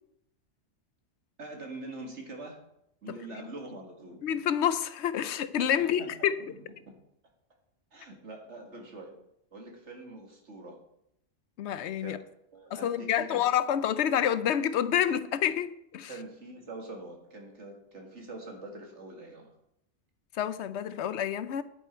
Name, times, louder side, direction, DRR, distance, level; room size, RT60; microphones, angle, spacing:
voice 1, 1.4-2.6 3.0-4.4 5.8-6.6 6.9-7.0 7.9-9.2 9.5-10.8 12.0-12.2 12.5-13.5 16.1-19.5, right 2 dB, 85° right, 2.3 m, -44 dB
voice 2, 4.2-6.4 11.6-12.2 12.7-16.1 20.4-21.6, left 9 dB, 75° left, 0.9 m, -28 dB
10.0 x 9.1 x 4.4 m
omnidirectional pair, 1.2 m